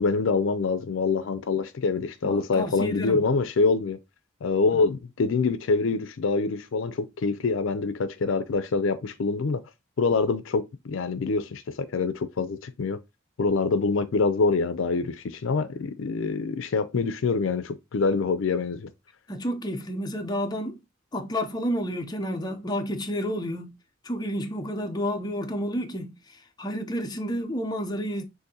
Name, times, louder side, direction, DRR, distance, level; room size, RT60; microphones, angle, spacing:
voice 1, 0.0-4.0 4.4-9.6 10.0-13.0 13.4-18.9, left 4 dB, 70° left, 0.4 m, -25 dB
voice 2, 2.2-3.2 19.3-20.8 21.1-23.7 24.0-26.1 26.6-28.2, equal, 20° left, 0.6 m, -30 dB
6.4 x 2.6 x 2.7 m
head